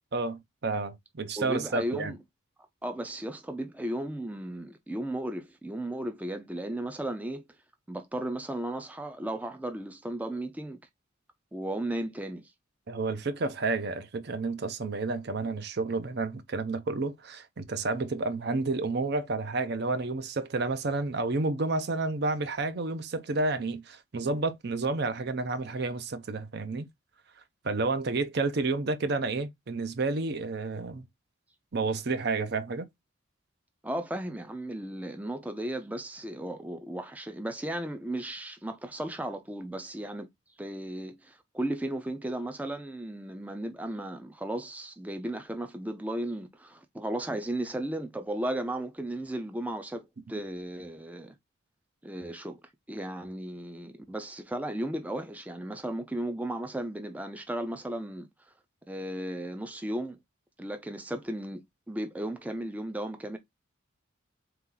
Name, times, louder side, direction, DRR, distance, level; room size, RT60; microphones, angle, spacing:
voice 1, 0.1-2.1 12.9-26.9 27.6-31.1 31.7-32.9, right 3 dB, 55° right, 0.6 m, -30 dB
voice 2, 1.4-2.2 2.8-7.4 7.9-10.8 11.5-12.5 33.8-40.3 40.6-51.4 52.0-52.6 52.9-58.3 58.9-60.2 60.6-63.4, right 1 dB, 5° right, 0.4 m, -35 dB
4.0 x 3.0 x 3.7 m
head